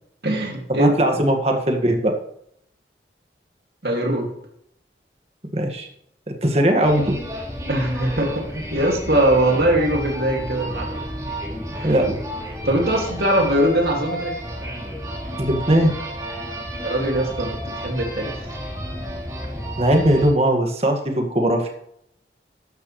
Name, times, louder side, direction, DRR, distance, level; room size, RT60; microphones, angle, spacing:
voice 1, 0.2-1.1 3.8-4.3 7.7-11.0 11.7-11.9 12.6-14.4 16.8-18.5, right 1 dB, 65° right, 1 dB, 2.5 m, -21 dB
voice 2, 0.8-2.1 5.5-5.9 6.3-7.1 11.8-12.2 15.4-15.9 19.8-21.7, right 1 dB, 35° right, 4 dB, 1.8 m, -19 dB
sound 1, 6.8-20.3, equal, 20° right, 3.0 m, -31 dB
13.5 x 10.5 x 3.3 m, 0.71 s
head